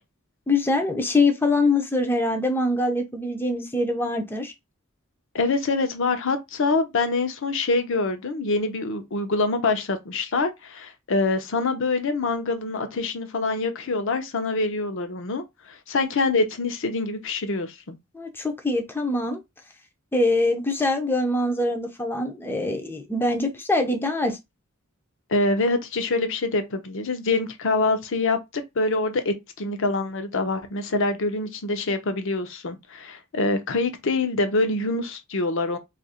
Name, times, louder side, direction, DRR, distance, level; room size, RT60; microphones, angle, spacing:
voice 1, 0.5-4.5 18.1-19.4 20.1-24.4, left 2 dB, 10° left, 0.5 m, -24 dB
voice 2, 5.3-18.0 25.3-35.8, left 3 dB, 65° left, 0.7 m, -25 dB
2.8 x 2.5 x 4.1 m
head